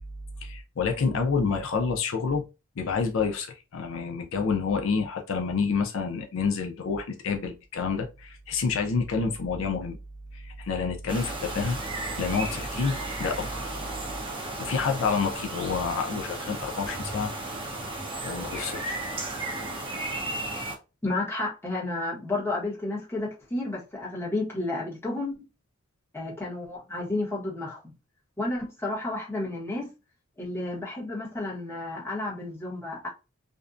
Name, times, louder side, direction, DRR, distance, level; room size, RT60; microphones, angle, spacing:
voice 1, 0.4-2.5 2.8-10.0 10.3-11.8 12.0-13.7 14.6-17.3 18.2-19.0, left 5 dB, 70° left, 0.4 m, -28 dB
sound 1, 11.1-20.8, right 2 dB, 25° right, 0.6 m, -34 dB
voice 2, 21.0-25.4 26.1-27.8 28.4-29.9 30.4-33.1, left 2 dB, 10° left, 0.9 m, -31 dB
2.5 x 2.1 x 2.4 m
head